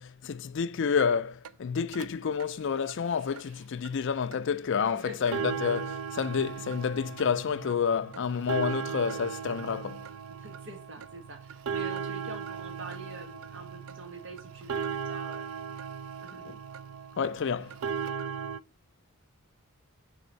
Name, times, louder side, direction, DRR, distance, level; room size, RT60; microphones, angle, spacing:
voice 1, 0.0-10.0 17.2-17.7, left 6 dB, 60° left, 0.4 m, -29 dB
sound 1, 1.0-1.1 1.4-1.5 1.9-2.1 2.4-2.5 2.9-3.0 3.4-3.5 3.8-3.9 4.3-4.4 4.8-4.9 5.2-18.6, right 6 dB, 80° right, 0.4 m, -37 dB
voice 2, 10.4-15.5 16.2-16.6, right 2 dB, 60° right, 1.6 m, -45 dB
7.0 x 3.5 x 4.1 m
head